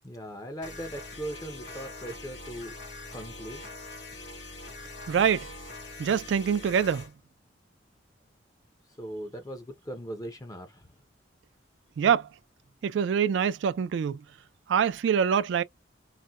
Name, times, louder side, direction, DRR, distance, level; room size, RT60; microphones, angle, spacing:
voice 1, 0.0-2.7 3.1-3.7 9.0-10.9, right 1 dB, 20° left, 0.6 m, -39 dB
sound 1, 0.6-7.1, left 2 dB, 65° left, 1.5 m, -43 dB
voice 2, 5.1-5.5 6.0-7.0 12.0-12.3 12.8-14.2 14.7-15.6, right 7 dB, 75° right, 0.3 m, -25 dB
4.0 x 2.1 x 2.3 m
head